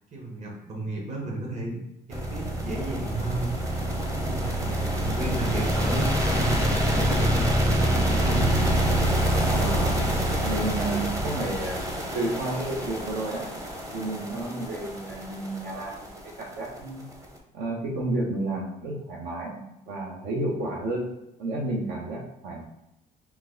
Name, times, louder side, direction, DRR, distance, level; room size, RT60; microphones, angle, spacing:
voice 1, 0.1-1.8 2.1-3.5 4.1-8.6, right 2 dB, 40° right, -1 dB, 1.2 m, -33 dB
sound 1, 2.1-17.2, right 1 dB, 20° right, 0.8 m, -26 dB
voice 2, 9.5-11.8 12.1-13.5 13.9-17.0 17.5-21.1 21.4-22.6, right 2 dB, 75° right, -2 dB, 1.0 m, -31 dB
4.5 x 2.3 x 3.8 m, 0.90 s
cardioid pair, 110°, 17 cm